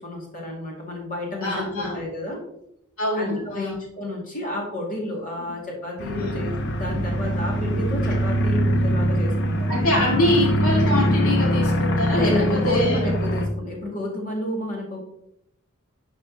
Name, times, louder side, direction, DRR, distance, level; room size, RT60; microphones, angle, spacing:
voice 1, 0.0-2.4 3.1-10.0 12.1-15.0, left 1 dB, 40° left, -2 dB, 2.3 m, -30 dB
voice 2, 1.4-2.0 3.0-3.8 6.1-6.4 9.7-13.0, left 1 dB, 80° left, -1 dB, 2.2 m, -24 dB
sound 1, 6.0-13.5, equal, 55° left, 0.9 m, -23 dB
11.0 x 4.3 x 2.9 m, 0.75 s
head